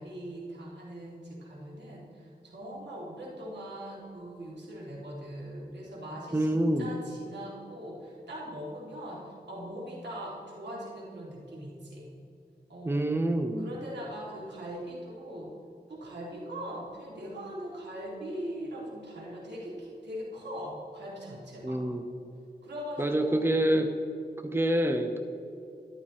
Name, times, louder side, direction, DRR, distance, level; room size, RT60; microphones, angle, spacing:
voice 1, 0.0-12.1 12.7-13.1 13.6-15.5 15.9-21.9 22.6-23.5, equal, 85° right, -5 dB, 3.6 m, -41 dB
voice 2, 6.3-6.9 12.8-13.7 21.6-22.0 23.0-23.9 24.4-25.2, right 1 dB, 15° right, 6 dB, 0.9 m, -26 dB
13.5 x 11.5 x 4.4 m, 2.7 s
wide cardioid pair, 60°, 17 cm